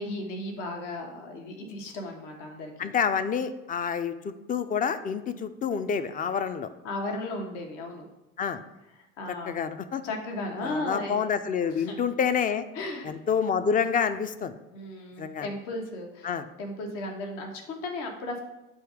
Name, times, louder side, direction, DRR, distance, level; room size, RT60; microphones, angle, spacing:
voice 1, 0.0-2.9 6.8-8.1 9.2-9.6 10.0-11.2 11.7-12.0 12.7-13.1 14.7-16.3 16.6-18.4, left 2 dB, 70° left, 2 dB, 1.0 m, -35 dB
voice 2, 2.8-6.7 8.4-8.6 9.5-10.0 10.6-12.7 13.0-14.5 15.2-15.5 16.2-16.5, left 6 dB, 25° left, 11 dB, 0.3 m, -28 dB
7.7 x 2.7 x 4.8 m, 0.98 s
hypercardioid pair, 60°, 38 cm